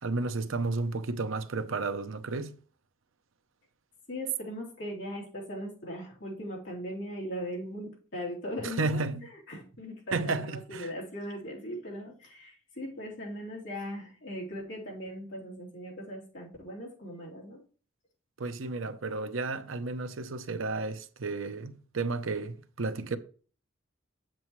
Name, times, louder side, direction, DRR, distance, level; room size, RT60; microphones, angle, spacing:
voice 1, 0.0-2.5 8.6-9.2 10.1-10.9 18.4-23.2, right 3 dB, 80° right, 0.7 m, -32 dB
voice 2, 4.1-9.0 9.5-17.6 18.8-18.9, equal, 65° left, 3.1 m, -39 dB
8.1 x 7.7 x 3.1 m
head